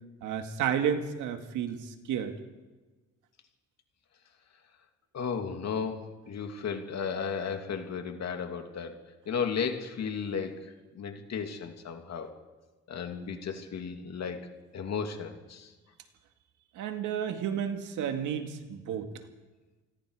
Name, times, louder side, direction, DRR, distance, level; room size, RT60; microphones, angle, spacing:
voice 1, 0.2-2.3 16.7-19.1, right 8 dB, 90° right, 6 dB, 2.1 m, -31 dB
voice 2, 5.1-8.9 9.3-12.3 12.9-15.7, left 6 dB, 60° left, 4 dB, 2.8 m, -34 dB
27.5 x 20.5 x 4.9 m, 1.2 s
cardioid pair, 90°, 30 cm